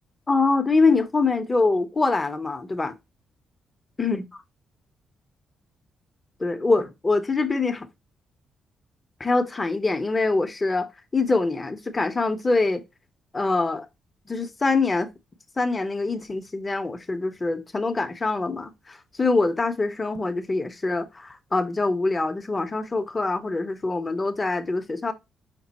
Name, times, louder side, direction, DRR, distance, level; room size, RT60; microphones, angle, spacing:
voice 1, 0.3-2.9 4.0-4.2 6.4-7.9 9.2-12.8 13.3-13.9 14.3-15.1 15.6-25.1, left 3 dB, 20° left, 0.7 m, -24 dB
5.9 x 2.0 x 4.0 m
cardioid pair, 140°, 0 cm